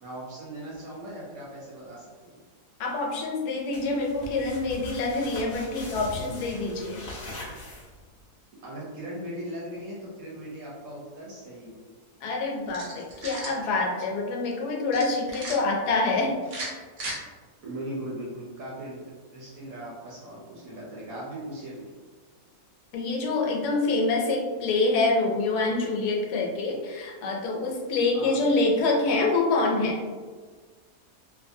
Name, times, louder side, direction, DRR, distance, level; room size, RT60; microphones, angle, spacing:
voice 1, 0.0-2.3 8.6-11.8 17.6-19.0 19.3-21.9 28.1-28.4, right 1 dB, 70° right, -5 dB, 1.0 m, -38 dB
voice 2, 2.8-7.1 12.2-16.4 22.9-30.0, left 3 dB, 80° left, 0 dB, 1.1 m, -26 dB
sound 1, 3.7-8.2, left 2 dB, 50° left, 0.7 m, -41 dB
sound 2, 12.7-13.6 14.9-15.6 16.4-17.2, right 2 dB, 85° right, 0.4 m, -36 dB
2.5 x 2.5 x 2.6 m, 1.5 s
omnidirectional pair, 1.7 m